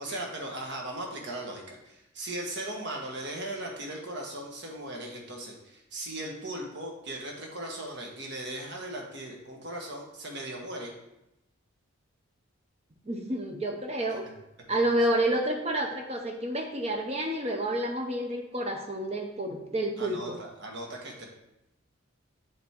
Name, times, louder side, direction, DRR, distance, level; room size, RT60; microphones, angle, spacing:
voice 1, 0.0-10.9 20.0-21.2, right 1 dB, 55° right, 0 dB, 1.5 m, -38 dB
voice 2, 13.1-14.2 14.7-20.4, right 1 dB, 30° right, 3 dB, 0.8 m, -29 dB
7.3 x 3.6 x 5.8 m, 0.86 s
head